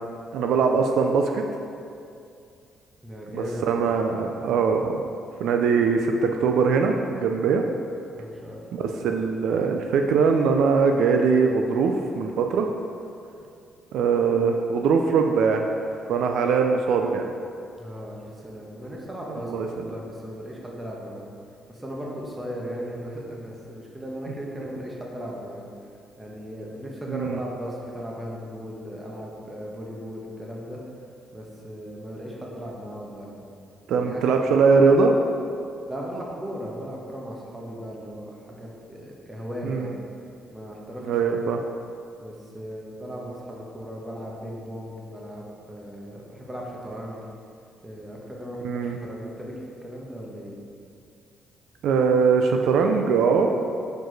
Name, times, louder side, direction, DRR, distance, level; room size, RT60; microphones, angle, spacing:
voice 1, 0.3-1.4 3.3-5.0 5.4-7.6 8.8-12.7 13.9-15.7 16.1-17.2 19.5-19.7 27.1-27.4 33.9-35.2 39.6-39.9 41.0-41.6 48.6-49.0 51.8-53.5, right 5 dB, 80° right, 3 dB, 0.4 m, -21 dB
voice 2, 3.0-3.6 8.1-8.9 13.4-13.5 14.2-14.3 17.7-21.3 21.7-25.7 26.2-30.8 31.3-33.4 33.9-34.2 35.9-40.0 40.5-41.1 42.2-47.2 47.8-50.6, equal, 15° right, -3 dB, 1.2 m, -37 dB
4.6 x 4.6 x 4.6 m, 2.4 s
cardioid pair, 90°, 0 cm